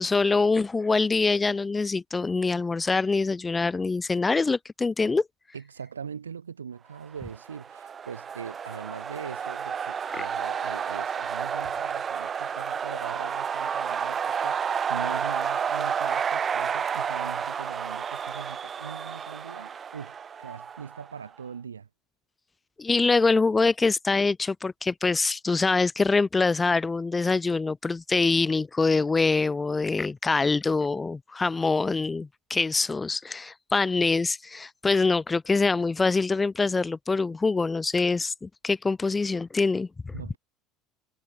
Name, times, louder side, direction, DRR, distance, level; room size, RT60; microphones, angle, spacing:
voice 1, 0.0-5.2 10.1-10.2 22.8-40.1, left 3 dB, 20° left, 1.2 m, -24 dB
voice 2, 5.5-21.9 40.1-40.4, right 6 dB, 85° right, 3.4 m, -41 dB
sound 1, 7.3-21.1, right 7 dB, 35° right, 1.6 m, -31 dB
hypercardioid pair, 70°, 0 cm